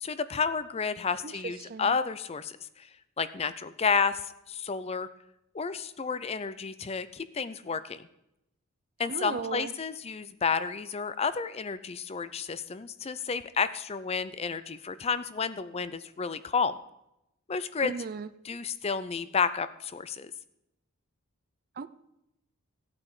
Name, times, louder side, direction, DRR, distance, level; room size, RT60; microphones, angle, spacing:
voice 1, 0.0-2.9 3.2-5.1 5.5-8.0 9.0-16.8 17.5-17.9 18.4-20.3, left 5 dB, 25° left, 14 dB, 0.4 m, -31 dB
voice 2, 1.2-2.0 9.1-9.7 17.8-18.3 21.8-21.9, right 5 dB, 40° right, 15 dB, 0.4 m, -36 dB
15.5 x 8.5 x 4.9 m, 0.85 s
head